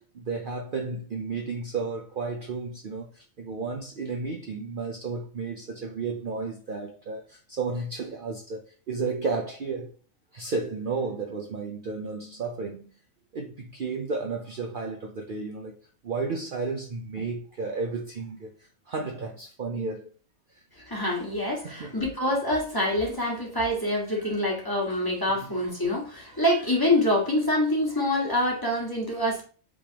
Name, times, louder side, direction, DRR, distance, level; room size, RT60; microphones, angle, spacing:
voice 1, 0.1-9.9 10.3-12.9 13.3-15.8 16.0-20.1 20.5-20.6 21.6-22.0, right 4 dB, 50° right, 0.7 m, -33 dB
voice 2, 20.8-29.4, left 1 dB, 15° left, 1.6 m, -26 dB
5.2 x 3.4 x 2.9 m
omnidirectional pair, 1.4 m